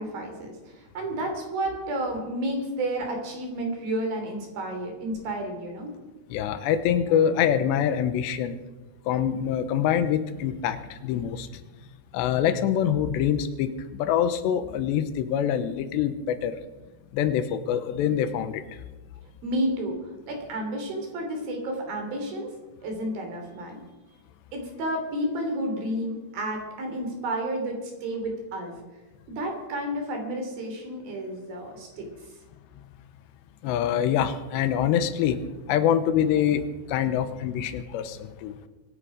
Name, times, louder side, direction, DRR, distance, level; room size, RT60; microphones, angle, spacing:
voice 1, 0.0-5.9 19.4-22.5 22.8-23.8 24.5-28.7 29.3-32.1, right 1 dB, 60° right, 3 dB, 4.8 m, -31 dB
voice 2, 6.3-8.6 9.1-11.6 12.1-16.6 17.1-18.6 33.6-35.4 35.7-38.6, left 9 dB, 85° left, 11 dB, 3.1 m, -25 dB
23.5 x 10.5 x 5.0 m, 1.1 s
omnidirectional pair, 4.9 m